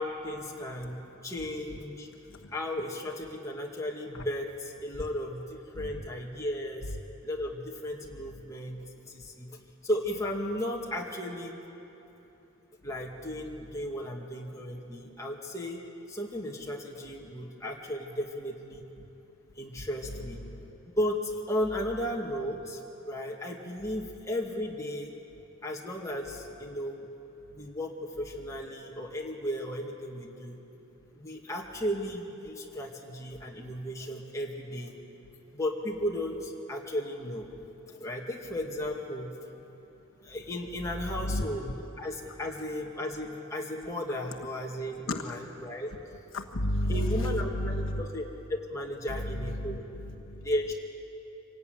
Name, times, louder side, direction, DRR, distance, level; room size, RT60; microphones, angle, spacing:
voice 1, 0.0-2.1 2.5-7.0 7.2-9.6 9.8-11.6 12.8-15.8 16.1-18.8 19.6-20.4 21.0-25.1 25.6-27.1 27.5-30.6 31.1-34.9 35.5-37.5 37.9-39.4 40.2-45.9 46.9-48.2 48.5-49.9 50.4-50.7, left 1 dB, 15° left, -2 dB, 2.3 m, -35 dB
voice 2, 46.3-48.0 49.6-50.5, left 1 dB, 65° left, 2 dB, 1.3 m, -31 dB
25.5 x 17.5 x 9.5 m, 2.9 s
head